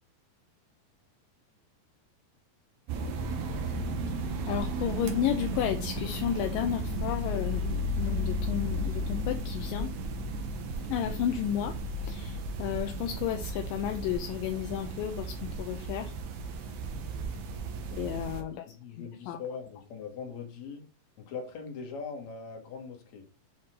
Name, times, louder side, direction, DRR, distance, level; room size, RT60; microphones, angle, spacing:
sound 1, 2.9-18.4, right 1 dB, 70° right, 1.9 m, -34 dB
voice 1, 4.5-9.9 10.9-11.8 12.0-16.1 17.9-18.6 19.3-19.4, left 10 dB, 80° left, 6 dB, 2.1 m, -32 dB
voice 2, 18.7-20.8 21.2-23.3, left 5 dB, 55° left, 2 dB, 2.4 m, -41 dB
7.8 x 4.1 x 3.7 m, 0.35 s
omnidirectional pair, 4.4 m